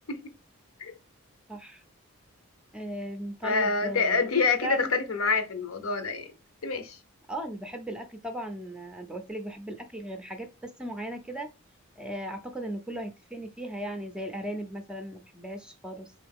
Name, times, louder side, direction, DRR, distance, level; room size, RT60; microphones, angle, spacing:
voice 1, 1.5-1.8 2.7-4.2 4.6-4.9 7.3-11.5 12.0-16.1, right 1 dB, 5° right, 0.5 m, -37 dB
voice 2, 3.4-6.3 6.6-7.0, left 4 dB, 70° left, 0.7 m, -27 dB
3.9 x 3.1 x 3.5 m
head